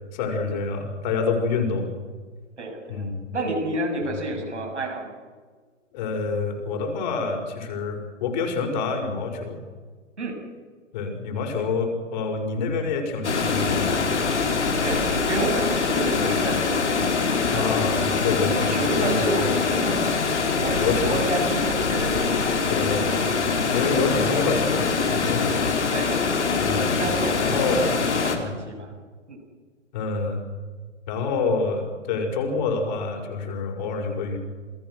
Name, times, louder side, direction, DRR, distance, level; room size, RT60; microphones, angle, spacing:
voice 1, 0.1-1.9 2.9-3.3 4.1-4.2 5.9-9.6 10.9-14.3 16.2-16.4 17.5-18.7 19.0-19.6 20.8-21.2 22.7-23.3 23.7-25.6 26.6-27.0 27.4-27.8 28.3-28.6 29.9-30.4 31.1-34.4, left 4 dB, 40° left, 3 dB, 5.5 m, -27 dB
voice 2, 2.6-3.1 3.3-5.1 10.2-10.4 14.8-17.1 17.5-17.8 18.5-20.2 20.6-20.8 21.1-22.5 25.2-26.4 27.0-28.9 29.3-29.4, right 2 dB, 70° right, 2 dB, 7.7 m, -30 dB
Water, 13.2-28.4, left 4 dB, 65° left, 3.8 m, -24 dB
28.0 x 19.5 x 6.4 m, 1.5 s
figure-of-eight pair, 125°, 37 cm